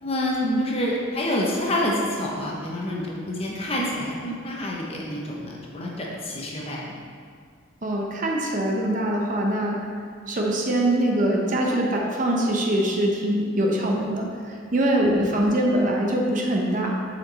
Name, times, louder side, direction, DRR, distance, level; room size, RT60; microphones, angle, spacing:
voice 1, 0.0-6.9 15.1-15.5, left 1 dB, 30° left, -3 dB, 0.9 m, -28 dB
voice 2, 7.8-9.8 10.3-16.9, right 1 dB, 40° right, 0 dB, 0.7 m, -23 dB
7.2 x 4.4 x 4.0 m, 2.1 s
head